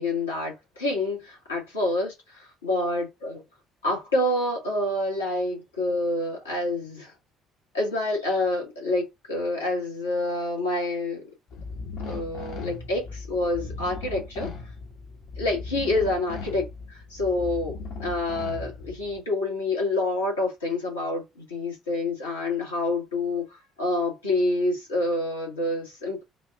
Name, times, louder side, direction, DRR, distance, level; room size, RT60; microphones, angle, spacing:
voice 1, 0.0-3.4 3.8-7.1 7.7-11.2 12.0-14.5 15.4-26.2, left 2 dB, 80° left, 1.7 m, -27 dB
sound 1, 11.5-19.2, left 4 dB, 55° left, 1.1 m, -38 dB
4.0 x 2.5 x 3.6 m
figure-of-eight pair, 50°, 0 cm